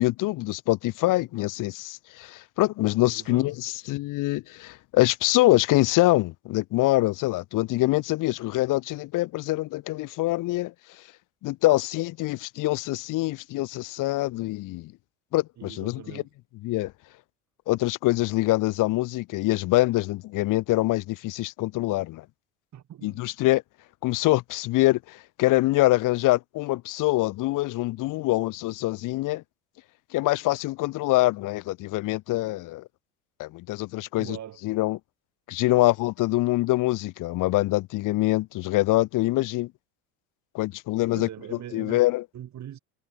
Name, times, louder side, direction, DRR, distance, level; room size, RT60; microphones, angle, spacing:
voice 1, 0.0-10.7 11.4-14.9 15.3-16.0 16.6-16.9 17.7-22.2 23.0-23.6 24.0-29.4 30.1-32.8 33.4-34.4 34.6-35.0 35.5-39.7 40.5-41.3 41.7-42.2, left 18 dB, 55° left, 0.8 m, -24 dB
voice 2, 3.1-3.6 15.6-16.3 22.7-23.2 34.0-34.6 35.7-35.9 41.1-42.0 42.3-42.8, right 11 dB, 50° right, 4.4 m, -41 dB
supercardioid pair, 90°, 37 cm